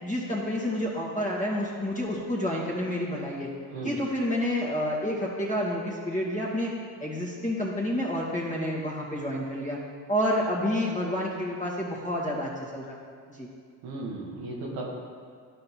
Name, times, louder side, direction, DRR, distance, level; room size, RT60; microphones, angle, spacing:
voice 1, 0.0-3.5 3.8-6.7 7.0-9.8 10.1-13.0 13.3-13.5, equal, 15° left, -6 dB, 2.1 m, -29 dB
voice 2, 13.8-14.9, right 2 dB, 90° right, -2 dB, 1.5 m, -35 dB
11.5 x 4.4 x 4.3 m, 2.1 s
supercardioid pair, 60°, 43 cm